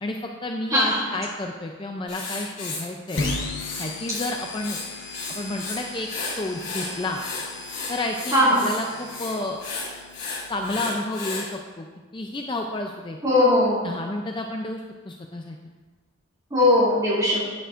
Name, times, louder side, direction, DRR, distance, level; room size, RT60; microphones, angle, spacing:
voice 1, 0.0-3.2 3.8-4.8 5.3-6.1 6.4-7.2 7.9-9.6 10.5-11.9 12.1-13.2 13.8-15.6, left 2 dB, 25° left, 2 dB, 0.4 m, -31 dB
voice 2, 0.7-1.1 8.3-8.7 13.2-13.9 16.5-17.4, left 1 dB, 20° right, -7 dB, 2.7 m, -19 dB
Writing, 2.1-4.3 4.6-5.8 6.1-11.5, left 3 dB, 40° left, 2.5 m, -34 dB
sound 1, 3.2-10.8, left 3 dB, 70° left, 1.0 m, -36 dB
10.5 x 9.2 x 2.5 m, 1.4 s
head